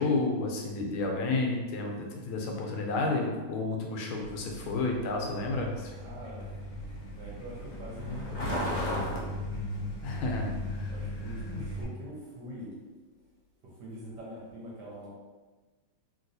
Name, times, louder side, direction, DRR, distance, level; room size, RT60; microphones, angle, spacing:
voice 1, 0.0-5.9 10.0-10.9, left 3 dB, 90° left, 1 dB, 1.5 m, -31 dB
Truck, 4.2-11.8, left 1 dB, 65° left, 1.1 m, -36 dB
voice 2, 5.9-6.6 6.8-9.2 10.6-12.7 13.6-15.1, equal, 65° right, -5 dB, 1.1 m, -44 dB
3.0 x 2.9 x 2.6 m, 1.3 s
omnidirectional pair, 2.3 m